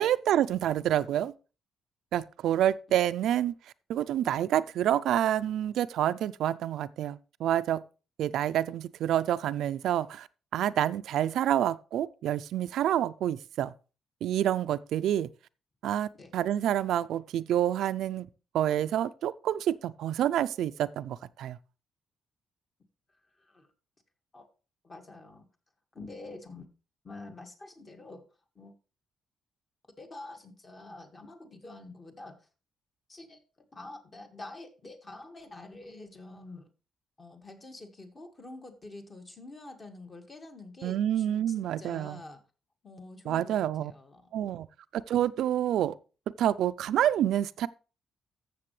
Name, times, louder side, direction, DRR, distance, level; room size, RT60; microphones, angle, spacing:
voice 1, 0.0-1.3 2.1-3.5 3.9-7.8 8.2-10.3 10.5-13.7 14.2-15.3 15.8-18.3 18.5-21.6 40.8-42.2 43.3-43.9 44.3-44.7 44.9-46.0 46.4-47.7, right 11 dB, 80° right, 0.4 m, -28 dB
voice 2, 23.3-23.7 24.3-24.5 24.8-25.4 25.9-26.7 27.0-28.2 28.6-28.7 30.0-32.5 33.1-33.4 33.7-36.7 37.2-42.4 42.8-44.4, left 2 dB, 30° left, 1.8 m, -47 dB
14.5 x 6.7 x 3.2 m
cardioid pair, 110°, 0 cm